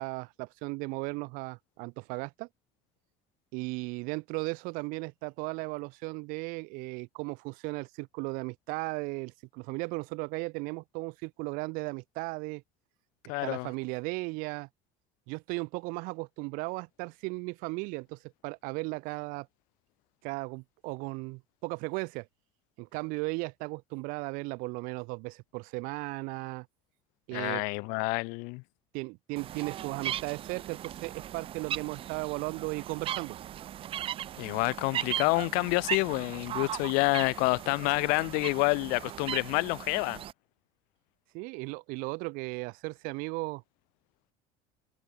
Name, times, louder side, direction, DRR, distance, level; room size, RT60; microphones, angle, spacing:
voice 1, 0.0-2.5 3.5-12.6 13.4-14.7 15.3-19.5 20.2-22.3 22.8-26.7 27.3-27.6 28.9-33.4 41.3-43.6, right 27 dB, 75° right, 1.6 m, -36 dB
voice 2, 13.3-13.7 27.3-28.6 34.4-40.2, left 30 dB, 80° left, 2.0 m, -28 dB
sound 1, 29.4-40.3, right 11 dB, 40° right, 0.7 m, -38 dB
cardioid pair, 130°, 14 cm